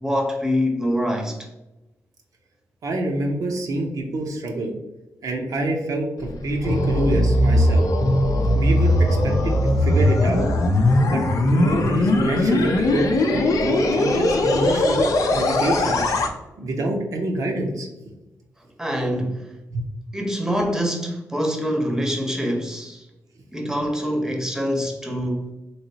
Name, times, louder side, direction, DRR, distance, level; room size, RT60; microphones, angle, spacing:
voice 1, 0.0-1.5 18.8-19.5 20.1-23.1 23.5-25.5, equal, 10° right, 2 dB, 0.8 m, -25 dB
voice 2, 2.8-4.7 5.2-7.9 8.5-10.5 11.0-11.2 11.5-16.1 16.6-17.9 19.1-19.3 19.7-19.8, right 2 dB, 70° right, 1 dB, 0.6 m, -26 dB
sound 1, 6.2-16.3, left 1 dB, 70° left, 0.5 m, -19 dB
3.1 x 2.9 x 2.8 m, 1.0 s
cardioid pair, 65°, 6 cm